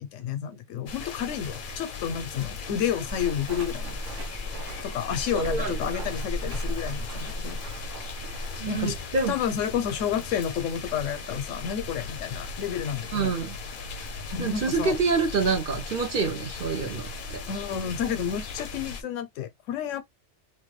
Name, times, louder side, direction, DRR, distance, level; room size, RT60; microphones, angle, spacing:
voice 1, 0.0-4.0 4.8-7.6 8.6-9.0 9.3-13.3 14.3-15.0 17.5-20.0, left 8 dB, 80° left, 1.0 m, -30 dB
sound 1, 0.9-19.0, left 4 dB, 55° left, 0.7 m, -38 dB
Walk footsteps, 3.1-8.6, equal, 80° right, 1.1 m, -35 dB
voice 2, 5.3-6.0 8.6-9.3 13.1-13.5 14.0-14.1 14.4-17.4, right 4 dB, 50° right, 0.8 m, -27 dB
3.1 x 2.2 x 3.1 m
omnidirectional pair, 1.3 m